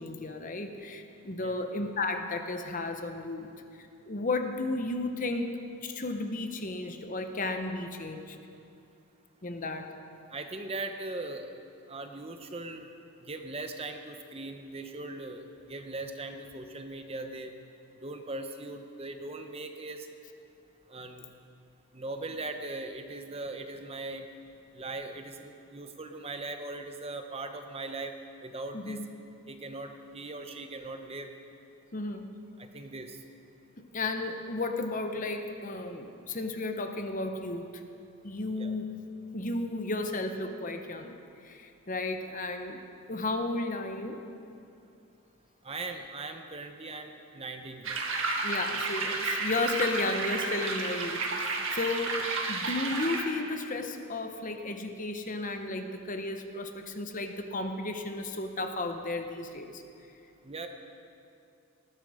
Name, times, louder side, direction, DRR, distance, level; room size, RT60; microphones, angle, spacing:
voice 1, 0.0-8.4 9.4-9.9 28.7-29.1 31.9-32.3 33.8-37.8 38.2-39.0 39.3-42.8 43.1-44.2 46.9-47.0 48.4-52.2 52.5-59.8, left 2 dB, 35° left, 6 dB, 0.9 m, -34 dB
voice 2, 10.3-11.5 11.9-12.8 13.2-17.5 18.0-20.1 20.9-21.3 21.9-24.3 24.7-28.1 28.4-29.0 29.5-31.3 32.6-33.2 38.6-38.7 45.6-48.0 60.4-60.7, right 2 dB, 25° right, 5 dB, 0.9 m, -39 dB
sound 1, 47.8-53.2, right 3 dB, 60° right, 1.8 m, -32 dB
19.0 x 13.5 x 5.0 m, 2.6 s
head